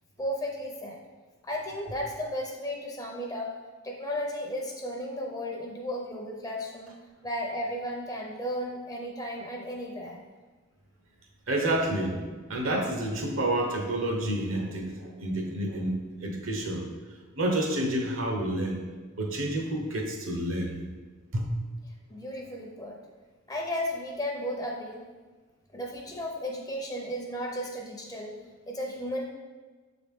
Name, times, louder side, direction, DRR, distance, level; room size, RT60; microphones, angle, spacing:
voice 1, 0.2-1.0 1.4-3.6 3.8-6.9 7.2-10.2 22.1-23.0 23.5-25.1 25.7-28.4 28.7-29.2, equal, 15° left, 0 dB, 0.6 m, -34 dB
voice 2, 11.5-16.9 17.4-18.8 19.2-20.8 21.3-21.5, right 1 dB, 70° right, 2 dB, 0.9 m, -29 dB
6.9 x 3.9 x 3.6 m, 1.4 s
head